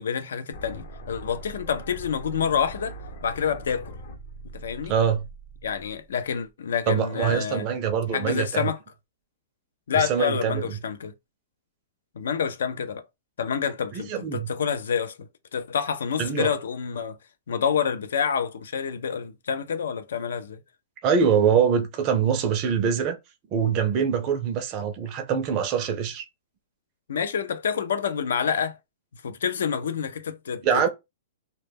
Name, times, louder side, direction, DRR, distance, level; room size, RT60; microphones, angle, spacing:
voice 1, 0.0-3.0 3.2-3.9 4.5-4.9 5.6-7.7 8.1-8.8 9.9-11.1 12.2-13.0 13.4-17.2 17.5-20.6 27.1-28.8 29.2-30.9, left 7 dB, 80° left, 0.4 m, -28 dB
sound 1, 0.5-6.5, right 1 dB, 65° left, 0.8 m, -42 dB
voice 2, 4.9-5.2 6.9-8.7 9.9-10.6 13.9-14.5 16.2-16.5 21.0-23.2 23.5-26.2 30.6-30.9, right 7 dB, 30° right, 0.4 m, -24 dB
2.1 x 2.1 x 3.3 m
hypercardioid pair, 150°, 0 cm